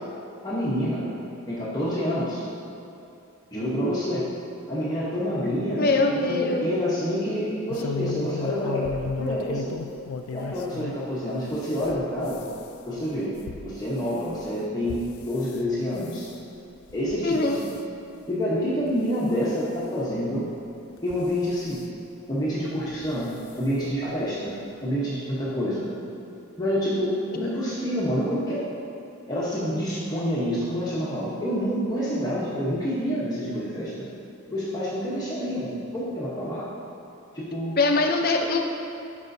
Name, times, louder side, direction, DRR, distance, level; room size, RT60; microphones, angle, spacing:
voice 1, 0.4-1.1 1.5-2.4 3.5-4.2 4.7-8.9 9.2-9.8 10.3-12.4 12.9-13.3 13.6-16.3 16.9-17.7 18.3-20.5 21.0-21.8 22.3-23.3 23.6-24.6 24.8-25.9 26.6-28.7 29.3-34.1 34.5-36.7 37.3-37.8, equal, 20° left, -8 dB, 0.9 m, -27 dB
voice 2, 5.8-6.7 17.2-17.6 37.8-38.6, left 3 dB, 45° left, 2 dB, 0.6 m, -22 dB
sound 1, 7.7-11.0 11.5-15.6 16.0-16.4 16.9-17.2 17.5-17.8 18.4-18.5 18.9-19.0 20.1-20.2 21.0-21.8 22.9-23.1 23.5-23.6 23.9-24.0, left 4 dB, 85° left, 0.4 m, -35 dB
11.5 x 5.5 x 2.7 m, 2.6 s
head